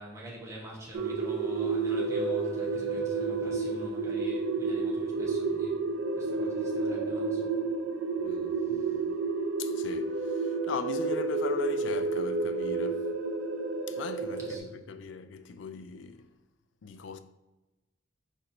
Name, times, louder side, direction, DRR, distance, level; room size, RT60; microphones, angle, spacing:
voice 1, 0.0-5.8 6.1-7.5 8.7-8.9 14.4-14.7, right 1 dB, 15° right, 1.0 m, -45 dB
sound 1, 0.9-14.6, right 3 dB, 85° right, 0.4 m, -30 dB
voice 2, 8.2-9.2 9.6-13.1 13.9-16.3 16.8-17.2, left 5 dB, 70° left, 0.3 m, -40 dB
4.2 x 2.6 x 4.3 m
head